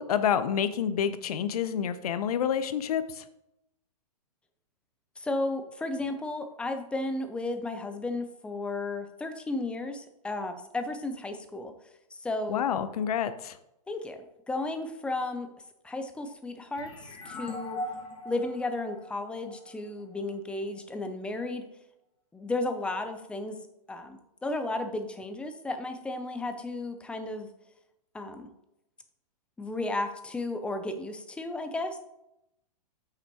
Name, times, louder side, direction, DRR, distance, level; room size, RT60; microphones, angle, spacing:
voice 1, 0.0-3.2 12.5-13.5, left 8 dB, 65° left, 12 dB, 0.7 m, -28 dB
voice 2, 5.2-11.7 12.1-12.6 13.9-15.5 15.8-16.9 17.3-17.8 18.2-21.7 22.3-23.6 23.9-27.5 28.1-28.5 29.6-32.0, left 2 dB, 5° left, 7 dB, 0.4 m, -33 dB
sound 1, 16.7-20.2, left 1 dB, 20° left, 1.6 m, -40 dB
7.8 x 5.9 x 2.9 m, 0.85 s
hypercardioid pair, 140°, 20 cm